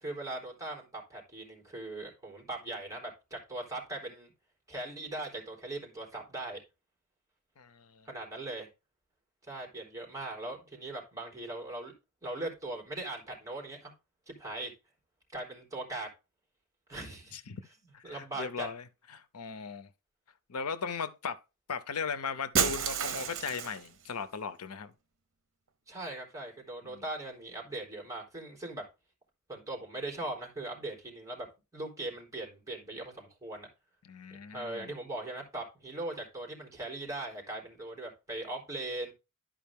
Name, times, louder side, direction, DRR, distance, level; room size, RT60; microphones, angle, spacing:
voice 1, 0.0-4.3 4.7-6.6 8.1-8.7 9.4-11.9 12.2-13.9 14.3-14.7 15.3-16.1 16.9-17.3 18.0-18.7 25.9-28.8 29.5-31.5 31.7-33.7 34.5-39.1, right 2 dB, 15° right, 3.6 m, -40 dB
voice 2, 7.6-8.1 17.3-17.6 17.9-18.8 19.1-19.9 20.5-21.4 21.7-24.9 26.8-27.0 34.0-34.9, left 5 dB, 85° left, 0.7 m, -38 dB
Shatter, 22.5-23.9, right 7 dB, 65° right, 1.0 m, -30 dB
11.5 x 5.0 x 3.6 m
head